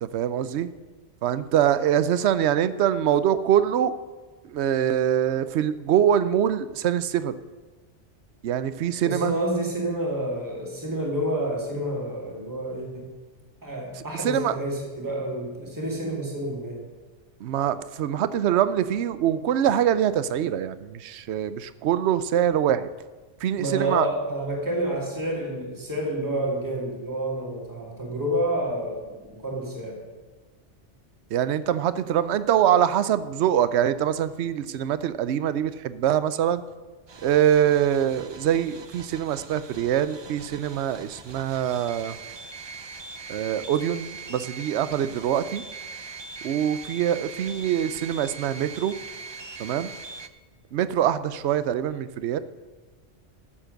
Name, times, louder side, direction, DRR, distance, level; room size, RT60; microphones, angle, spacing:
voice 1, 0.0-0.7 1.2-3.9 4.5-7.4 8.4-9.3 14.2-14.6 17.4-22.9 23.4-24.1 31.3-36.6 37.2-42.1 43.3-45.6 46.4-48.9 49.6-49.9 50.7-52.4, right 10 dB, 70° right, 14 dB, 0.9 m, -24 dB
voice 2, 9.0-13.2 13.6-16.8 23.6-29.0 29.3-30.0, right 1 dB, 15° right, -2 dB, 2.4 m, -29 dB
sound 1, 37.1-50.3, right 4 dB, 35° right, 0.4 m, -41 dB
13.5 x 7.4 x 6.5 m, 1.3 s
omnidirectional pair, 1.2 m